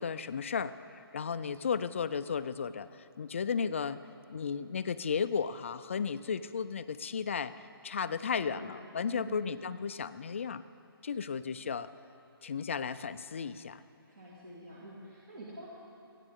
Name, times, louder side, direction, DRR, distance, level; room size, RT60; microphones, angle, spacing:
voice 1, 0.0-4.0 4.3-10.6 11.0-11.9 12.4-13.8, left 6 dB, 30° left, 13 dB, 0.3 m, -34 dB
voice 2, 8.1-9.5 14.0-15.7, right 1 dB, 40° right, -6 dB, 2.3 m, -48 dB
27.5 x 9.8 x 3.7 m, 2.8 s
hypercardioid pair, 170°, 13 cm